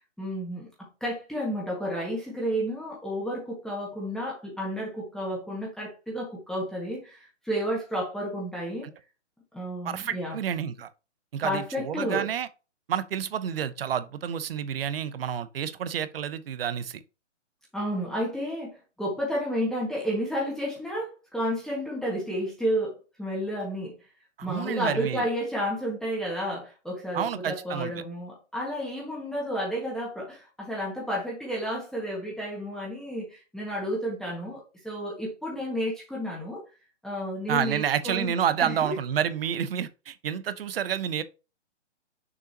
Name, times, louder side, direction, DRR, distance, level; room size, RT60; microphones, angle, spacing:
voice 1, 0.2-8.9 9.5-10.4 11.4-12.3 17.7-23.9 24.4-36.6 37.0-38.3 38.6-38.9, equal, ahead, 1.7 m, -31 dB
voice 2, 9.8-10.9 11.3-12.5 12.9-17.0 24.5-25.2 27.1-27.9 37.5-41.2, right 9 dB, 50° right, 0.8 m, -29 dB
6.8 x 5.6 x 2.8 m
hypercardioid pair, 145°, 36 cm